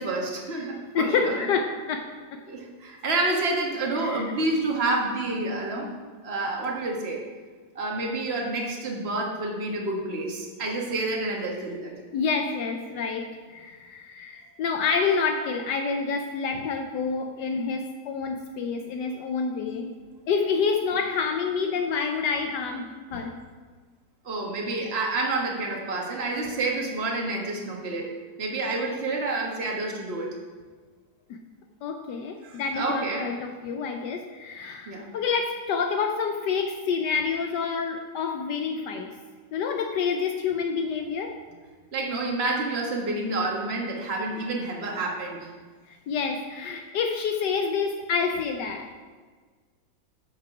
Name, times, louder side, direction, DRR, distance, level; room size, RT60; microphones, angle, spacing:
voice 1, 0.0-1.3 2.4-5.9 6.2-7.2 7.7-11.9 24.2-28.1 28.4-30.3 32.4-33.3 34.9-35.1 41.9-45.5, right 2 dB, 35° right, -1 dB, 1.5 m, -29 dB
voice 2, 0.9-2.4 4.0-4.3 12.1-19.9 20.3-23.3 31.8-39.1 39.5-41.3 45.9-48.9, left 5 dB, 70° left, 4 dB, 1.2 m, -28 dB
8.4 x 6.0 x 5.9 m, 1.5 s
omnidirectional pair, 2.1 m